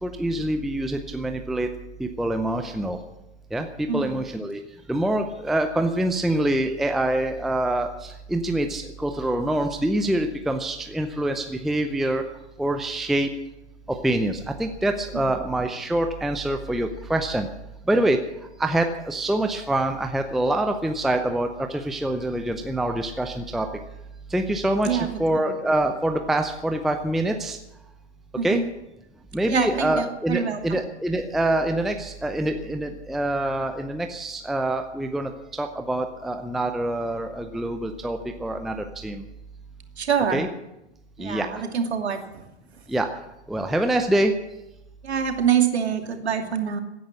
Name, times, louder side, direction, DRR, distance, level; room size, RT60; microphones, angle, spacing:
voice 1, 0.0-1.7 2.0-3.0 3.5-4.6 4.9-12.2 12.6-13.3 13.9-17.5 17.9-18.2 18.6-23.7 24.3-27.6 28.4-28.6 29.3-39.2 40.3-40.5 41.2-41.6 42.9-43.1 43.5-44.3, right 1 dB, ahead, 6 dB, 0.6 m, -25 dB
voice 2, 3.9-4.2 15.1-15.3 24.8-25.1 25.3-25.5 28.4-28.7 29.5-30.8 40.0-40.4 41.2-42.2 45.0-46.8, right 7 dB, 65° right, 5 dB, 2.7 m, -25 dB
16.5 x 10.5 x 8.6 m, 0.90 s
figure-of-eight pair, 120°, 34 cm